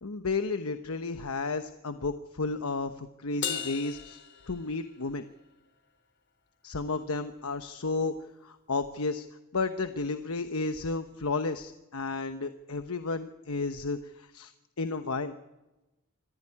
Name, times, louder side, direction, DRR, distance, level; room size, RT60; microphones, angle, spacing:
voice 1, 0.0-4.2 4.5-5.3 6.6-8.1 8.4-9.2 9.5-14.5 14.8-15.3, left 3 dB, 85° left, 8 dB, 1.0 m, -32 dB
Crash cymbal, 3.4-5.1, left 8 dB, 55° left, 2.8 m, -36 dB
25.5 x 16.0 x 9.9 m, 1.0 s
head